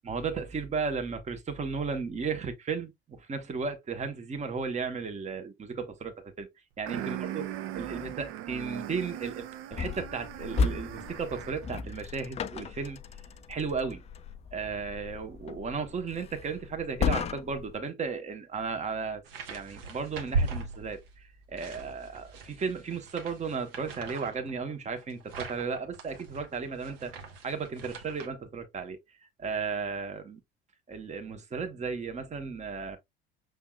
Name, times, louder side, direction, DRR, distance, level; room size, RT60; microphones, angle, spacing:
voice 1, 0.0-6.5 6.8-7.4 7.7-13.0 13.5-14.0 14.5-19.2 19.5-27.1 27.4-29.0 29.4-30.4 30.9-33.0, right 5 dB, 25° right, 1.2 m, -35 dB
sound 1, 6.9-11.8, right 13 dB, 45° right, 0.6 m, -39 dB
sound 2, 9.7-17.8, left 5 dB, 20° left, 0.4 m, -35 dB
sound 3, 19.2-21.2 21.6-28.3, right 3 dB, 70° right, 1.1 m, -38 dB
6.3 x 3.5 x 2.3 m
figure-of-eight pair, 70°, 30 cm